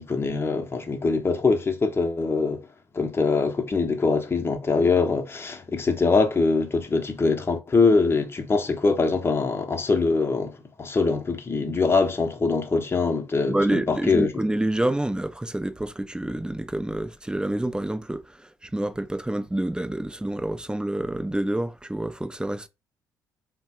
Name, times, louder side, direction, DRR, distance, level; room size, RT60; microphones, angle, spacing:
voice 1, 0.0-2.7 2.9-14.3, left 4 dB, 25° left, 0.8 m, -23 dB
voice 2, 13.5-22.7, right 1 dB, 10° right, 0.6 m, -28 dB
3.6 x 2.2 x 4.3 m
hypercardioid pair, 50°, 9 cm